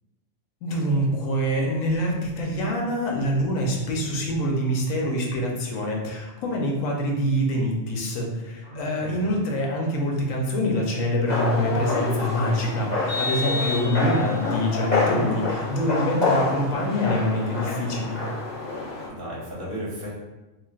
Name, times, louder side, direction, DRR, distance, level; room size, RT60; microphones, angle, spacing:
voice 1, 0.6-18.2, equal, 90° left, -1 dB, 1.1 m, -25 dB
voice 2, 8.6-9.2 19.1-20.1, equal, 45° right, -6 dB, 1.2 m, -35 dB
sound 1, 11.3-19.1, left 3 dB, 35° left, 1.0 m, -27 dB
Vehicle horn car horn honking, 13.1-14.5, left 3 dB, 10° left, 0.5 m, -30 dB
3.1 x 2.7 x 2.3 m, 1.1 s
omnidirectional pair, 1.3 m